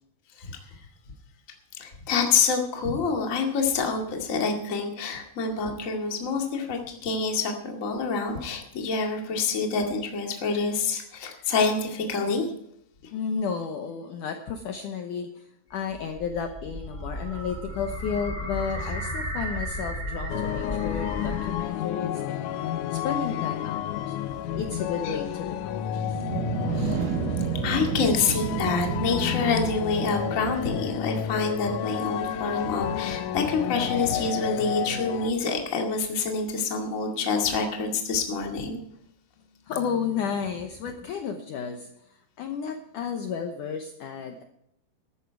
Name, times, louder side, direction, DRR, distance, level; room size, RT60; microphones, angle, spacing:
voice 1, 1.8-12.5 24.5-24.6 25.0-25.2 26.7-27.0 27.6-38.8, left 4 dB, 30° left, 2 dB, 1.5 m, -27 dB
voice 2, 13.1-22.5 22.9-24.2 24.6-26.2 39.7-44.4, left 6 dB, 70° left, 5 dB, 2.0 m, -32 dB
sound 1, 15.7-21.8, equal, 10° left, 2.5 m, -34 dB
sound 2, 20.3-35.3, left 10 dB, 90° left, 1.8 m, -31 dB
sound 3, 25.9-30.8, right 10 dB, 75° right, 2.5 m, -31 dB
14.5 x 12.5 x 4.6 m, 0.77 s
omnidirectional pair, 4.7 m